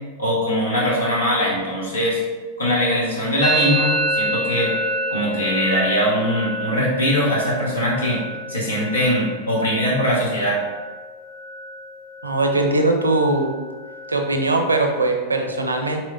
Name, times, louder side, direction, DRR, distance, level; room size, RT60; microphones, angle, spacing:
voice 1, 0.2-2.2 2.6-4.7 5.1-8.2 8.5-10.6, equal, 85° left, -5 dB, 1.3 m, -21 dB
Musical instrument, 3.4-11.1 11.3-11.9 12.2-12.7 13.0-15.0, right 1 dB, 10° left, 0.4 m, -28 dB
voice 2, 12.2-13.5 14.1-16.0, right 2 dB, 90° right, 4 dB, 0.5 m, -20 dB
4.3 x 3.3 x 2.6 m, 1.4 s
figure-of-eight pair, 95°, 0 cm